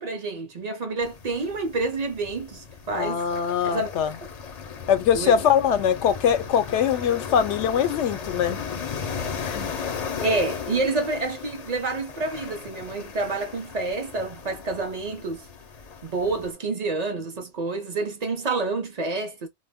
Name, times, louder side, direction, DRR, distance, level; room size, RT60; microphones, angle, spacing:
voice 1, 0.0-3.3 3.6-3.9 5.1-5.4 9.7-9.9 10.2-15.5 16.0-19.5, right 3 dB, 45° right, 0.6 m, -28 dB
sound 1, 1.0-16.5, left 6 dB, 45° left, 0.5 m, -36 dB
voice 2, 2.9-4.2 4.9-8.6 9.4-9.7, left 8 dB, 85° left, 0.9 m, -22 dB
2.2 x 2.1 x 3.4 m
omnidirectional pair, 1.2 m